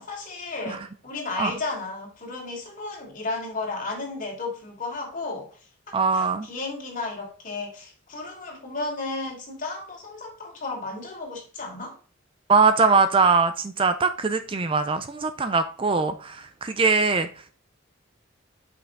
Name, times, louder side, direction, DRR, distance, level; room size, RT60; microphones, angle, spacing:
voice 1, 0.0-5.5 6.1-12.0, left 3 dB, 40° left, 2.6 m, -33 dB
voice 2, 5.9-6.5 12.5-17.5, right 4 dB, 25° right, 0.4 m, -22 dB
6.0 x 5.5 x 3.8 m
head